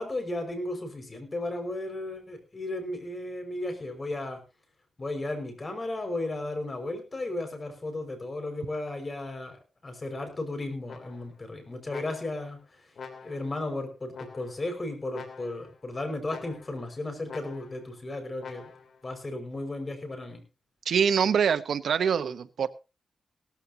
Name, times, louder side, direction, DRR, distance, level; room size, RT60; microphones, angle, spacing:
voice 1, 0.0-4.4 5.0-9.6 9.8-12.6 13.2-18.7 19.0-20.4, left 2 dB, 30° left, 6 dB, 5.4 m, -34 dB
sound 1, 10.9-11.4 11.9-12.5 13.0-13.6 14.1-14.7 15.1-15.8 16.3-16.9 17.3-17.9 18.4-19.0, left 5 dB, 65° left, 3.0 m, -45 dB
voice 2, 20.9-22.7, right 7 dB, 70° right, 12 dB, 1.0 m, -24 dB
18.0 x 14.0 x 2.8 m, 0.30 s
cardioid pair, 90°, 0 cm